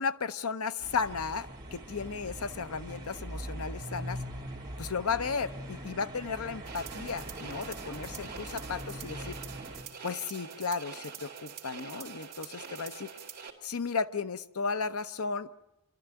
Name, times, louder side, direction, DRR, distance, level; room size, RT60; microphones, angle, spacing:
voice 1, 0.0-4.2 4.8-9.4 10.0-13.1 13.6-15.5, left 5 dB, 85° left, 12 dB, 0.7 m, -34 dB
sound 1, 0.8-9.8, right 1 dB, 20° right, 3.5 m, -42 dB
sound 2, 6.6-13.5, right 7 dB, 45° right, 2.8 m, -45 dB
25.5 x 13.0 x 9.0 m, 0.94 s
head